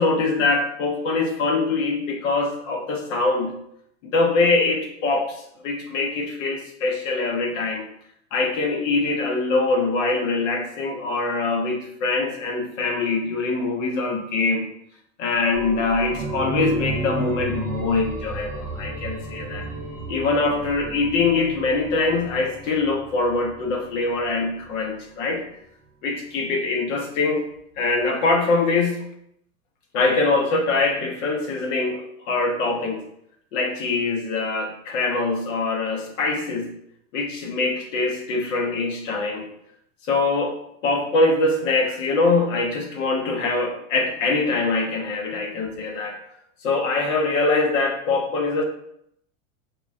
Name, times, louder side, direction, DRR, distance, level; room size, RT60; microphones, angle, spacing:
voice 1, 0.0-3.5 4.0-7.8 8.3-14.6 15.2-19.7 20.1-25.4 26.0-27.4 27.8-29.0 29.9-33.0 33.5-36.7 37.1-39.5 40.0-40.6 40.8-46.2 46.6-48.6, left 3 dB, 80° left, 2 dB, 1.0 m, -23 dB
sound 1, 15.5-24.9 25.2-25.3, right 2 dB, 10° right, 0.6 m, -33 dB
4.9 x 2.3 x 2.6 m, 0.74 s
supercardioid pair, 140°, 38 cm